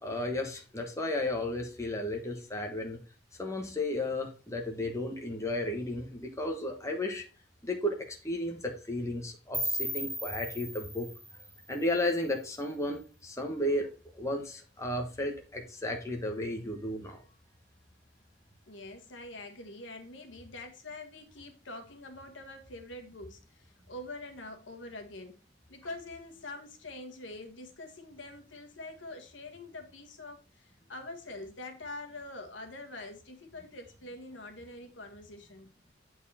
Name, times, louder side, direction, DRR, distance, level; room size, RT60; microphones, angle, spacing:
voice 1, 0.0-3.0 3.4-7.2 7.6-11.1 11.7-13.9 14.2-17.2, left 1 dB, 15° left, 2 dB, 1.3 m, -33 dB
sound 1, 9.5-12.5, equal, ahead, 1.1 m, -37 dB
voice 2, 18.7-25.4 25.7-35.7, left 2 dB, 85° left, 4 dB, 1.4 m, -45 dB
8.2 x 4.6 x 4.2 m, 0.33 s
head